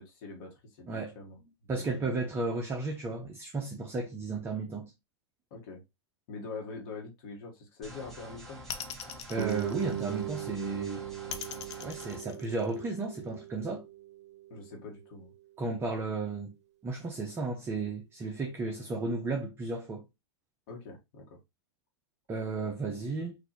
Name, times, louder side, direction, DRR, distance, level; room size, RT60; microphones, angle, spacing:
voice 1, 0.0-1.4 1.8-2.1 5.5-5.8 6.3-8.6 14.5-15.3 20.7-21.4, left 4 dB, 50° left, 1.3 m, -44 dB
voice 2, 1.7-4.9 9.3-11.0 11.8-13.9 15.6-16.6 16.8-20.0 22.3-23.4, right 3 dB, 15° right, 0.6 m, -34 dB
sound 1, 7.8-12.2, right 1 dB, ahead, 1.7 m, -48 dB
sound 2, 8.7-10.4 11.3-13.1, left 8 dB, 75° left, 0.6 m, -41 dB
Guitar, 9.4-14.7, right 13 dB, 80° right, 0.5 m, -39 dB
4.0 x 2.6 x 2.8 m
hypercardioid pair, 135°, 15 cm